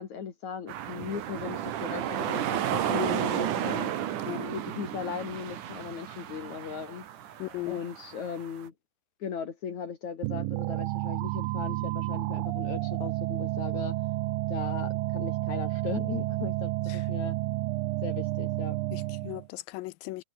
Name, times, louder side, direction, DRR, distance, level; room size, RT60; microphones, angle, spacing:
voice 1, 0.0-3.9 4.5-7.1 7.7-8.7 9.2-14.0 14.5-17.4 18.0-18.8, left 7 dB, 60° left, 3.5 m, -38 dB
sound 1, 0.7-8.6, right 10 dB, 70° right, 3.0 m, -33 dB
voice 2, 2.9-3.2 4.3-4.5 7.4-7.8 16.9-17.0 18.9-20.2, left 19 dB, 85° left, 2.4 m, -37 dB
sound 2, 10.2-19.5, right 19 dB, 85° right, 2.4 m, -31 dB
omnidirectional pair, 4.0 m